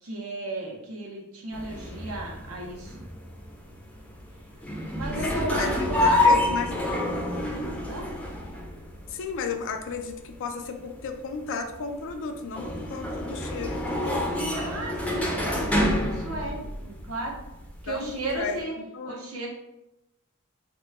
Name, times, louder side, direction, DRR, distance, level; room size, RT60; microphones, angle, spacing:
voice 1, 0.0-3.0 4.9-6.4 7.9-8.1 14.3-17.4 17.8-18.7 19.0-19.5, right 2 dB, 70° right, -1 dB, 0.8 m, -34 dB
sound 1, 1.5-18.6, left 1 dB, 5° left, 0.6 m, -29 dB
voice 2, 5.3-6.7 9.1-14.2 17.9-19.3, left 5 dB, 60° left, 5 dB, 0.4 m, -34 dB
2.9 x 2.2 x 3.5 m, 0.91 s
head